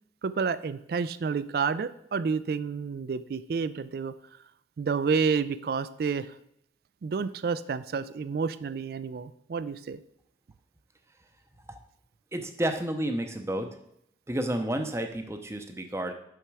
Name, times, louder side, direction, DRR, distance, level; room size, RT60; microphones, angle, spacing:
voice 1, 0.2-4.1 4.8-6.3 7.0-10.0, right 5 dB, 55° right, 15 dB, 0.3 m, -29 dB
voice 2, 12.3-13.8 14.3-16.1, right 1 dB, 15° right, 6 dB, 0.6 m, -31 dB
7.1 x 5.6 x 4.7 m, 0.75 s
head